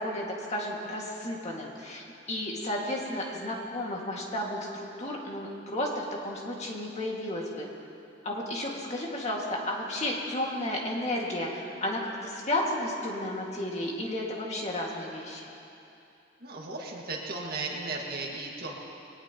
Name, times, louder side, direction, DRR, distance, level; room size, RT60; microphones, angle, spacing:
voice 1, 0.0-7.7 8.2-15.5, left 1 dB, 35° left, -2 dB, 2.1 m, -33 dB
voice 2, 16.4-18.8, right 3 dB, 55° right, -1 dB, 2.0 m, -35 dB
22.0 x 18.5 x 3.0 m, 2.7 s
head